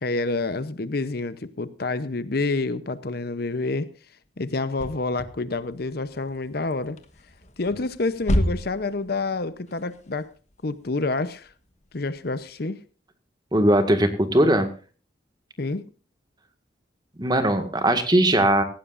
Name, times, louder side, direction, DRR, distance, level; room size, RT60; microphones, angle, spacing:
voice 1, 0.0-3.9 4.4-7.0 7.6-10.3 10.6-11.5 11.9-12.8 15.6-15.9, left 3 dB, 55° left, 0.8 m, -28 dB
sound 1, 4.5-12.5, equal, 40° left, 1.4 m, -32 dB
voice 2, 13.5-14.7 17.2-18.6, right 1 dB, 20° right, 1.9 m, -19 dB
18.5 x 15.5 x 2.6 m
head